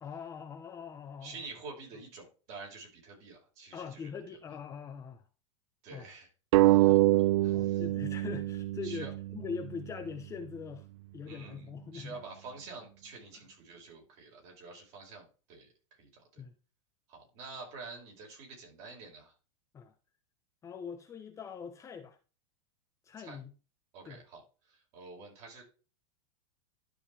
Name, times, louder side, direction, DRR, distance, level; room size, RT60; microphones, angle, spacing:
voice 1, 0.0-1.4 3.7-5.2 5.9-6.1 6.8-7.1 7.5-10.9 11.1-12.2 16.4-16.5 19.7-19.9 20.6-22.2 23.0-23.5 24.0-24.2, left 6 dB, 20° left, 0.9 m, -42 dB
voice 2, 1.2-4.1 5.8-6.3 6.6-7.0 7.4-7.8 8.8-9.1 11.3-11.7 11.9-16.4 17.1-19.3 23.2-23.4 23.9-24.4 24.7-25.6, right 4 dB, 40° right, 5.4 m, -48 dB
sound 1, 6.5-9.7, right 17 dB, 70° right, 0.4 m, -25 dB
12.5 x 5.1 x 3.4 m
supercardioid pair, 150°, 16 cm